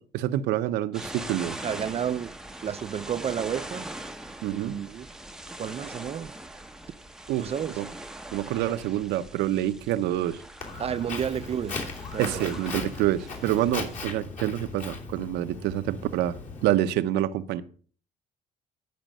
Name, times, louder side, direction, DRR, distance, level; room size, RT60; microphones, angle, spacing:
voice 1, 0.0-1.6 4.4-4.8 7.3-7.9 8.3-10.4 12.2-17.6, right 13 dB, 85° right, 0.7 m, -27 dB
sound 1, 0.9-14.0, right 1 dB, 5° right, 0.7 m, -42 dB
voice 2, 1.6-2.3 2.6-3.9 4.5-5.1 5.6-6.3 7.4-7.8 10.8-11.9 12.1-12.5, right 8 dB, 35° right, 0.4 m, -31 dB
Walk footsteps, 10.6-16.7, left 3 dB, 45° left, 3.0 m, -37 dB
10.5 x 5.1 x 6.4 m
cardioid pair, 110°, 17 cm